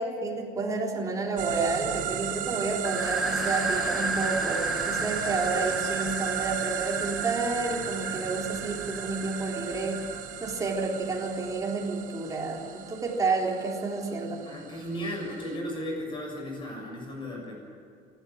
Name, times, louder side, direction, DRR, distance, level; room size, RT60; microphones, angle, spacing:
voice 1, 0.0-10.0 10.4-14.4, right 3 dB, 20° right, -1 dB, 3.7 m, -30 dB
sound 1, 1.4-15.6, right 11 dB, 50° right, 1.3 m, -36 dB
sound 2, 2.8-10.3, right 1 dB, ahead, 1.5 m, -33 dB
voice 2, 14.5-17.5, equal, 30° left, 0 dB, 7.0 m, -35 dB
28.5 x 12.5 x 8.8 m, 2.4 s
cardioid pair, 165°, 17 cm